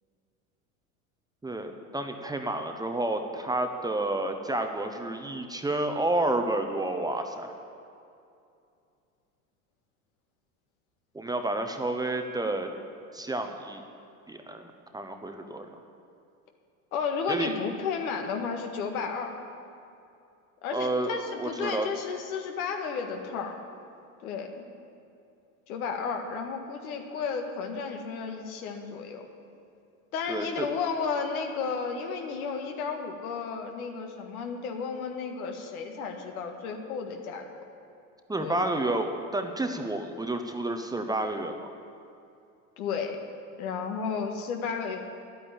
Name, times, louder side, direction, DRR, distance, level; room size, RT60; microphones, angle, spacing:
voice 1, 1.4-7.5 11.1-12.7 13.1-13.8 14.3-15.8 17.3-17.5 20.7-21.9 30.3-30.6 38.3-41.7, right 2 dB, 10° right, 5 dB, 0.8 m, -30 dB
voice 2, 16.9-19.4 20.6-23.6 24.2-24.6 25.7-29.3 30.1-37.6 38.4-38.7 42.8-43.2 43.6-45.0, left 5 dB, 80° left, 4 dB, 1.8 m, -33 dB
10.5 x 9.1 x 8.7 m, 2.6 s
hypercardioid pair, 105°, 43 cm